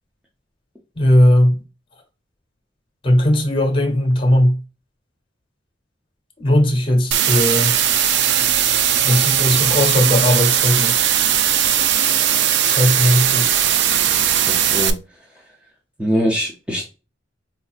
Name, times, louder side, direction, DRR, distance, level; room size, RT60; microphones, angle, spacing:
voice 1, 0.9-1.6 3.0-4.6 6.4-7.7 9.0-11.0 12.7-13.6, left 1 dB, 25° left, 1.0 m, -17 dB
sound 1, 7.1-14.9, right 10 dB, 60° right, 0.4 m, -18 dB
voice 2, 14.4-15.0 16.0-16.9, equal, 5° right, 0.6 m, -22 dB
4.1 x 2.7 x 2.4 m
head